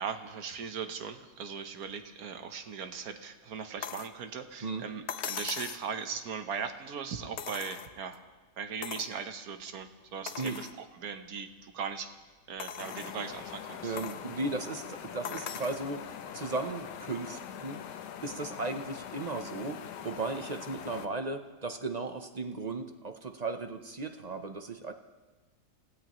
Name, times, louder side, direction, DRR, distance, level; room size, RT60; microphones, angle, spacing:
voice 1, 0.0-8.2 8.6-12.1 12.5-14.0, right 6 dB, 60° right, 7 dB, 1.5 m, -39 dB
sound 1, 3.8-4.2 5.1-5.9 7.4-8.2 8.8-9.2 9.7-9.8 10.3-10.8 11.4-11.5 12.6-13.2 14.0-14.2 15.2-15.8 17.1-17.2, left 8 dB, 55° left, 0.8 m, -40 dB
sound 2, 12.8-21.1, left 9 dB, 80° left, 1.3 m, -43 dB
voice 2, 13.8-17.8 18.2-24.9, right 3 dB, 40° right, 6 dB, 0.6 m, -36 dB
28.0 x 17.0 x 3.1 m, 1.2 s
omnidirectional pair, 1.8 m